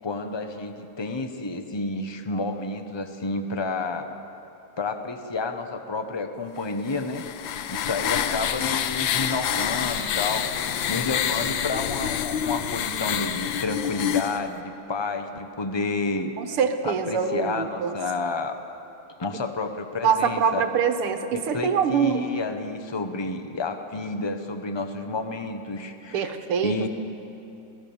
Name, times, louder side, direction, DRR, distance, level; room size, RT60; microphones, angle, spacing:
voice 1, 0.0-4.1 4.8-7.2 7.7-10.5 10.9-16.6 16.8-18.6 19.2-20.6 21.3-26.3 26.6-26.9, left 3 dB, 25° left, 7 dB, 0.5 m, -30 dB
sound 1, 6.9-14.4, left 9 dB, 70° left, 1.5 m, -27 dB
voice 2, 16.4-17.9 20.0-22.2 26.1-26.9, right 7 dB, 80° right, 7 dB, 2.1 m, -24 dB
27.5 x 17.0 x 7.2 m, 2.8 s
omnidirectional pair, 2.4 m